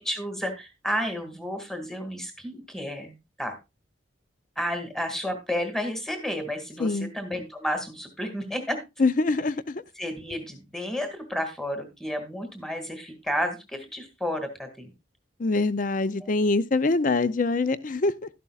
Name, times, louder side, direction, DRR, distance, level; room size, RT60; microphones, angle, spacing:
voice 1, 0.0-3.6 4.6-8.8 10.0-14.9 16.2-16.3, equal, ahead, 1.9 m, -31 dB
voice 2, 6.8-7.1 9.0-9.8 15.4-18.3, left 3 dB, 40° left, 0.5 m, -24 dB
12.5 x 11.0 x 2.4 m
head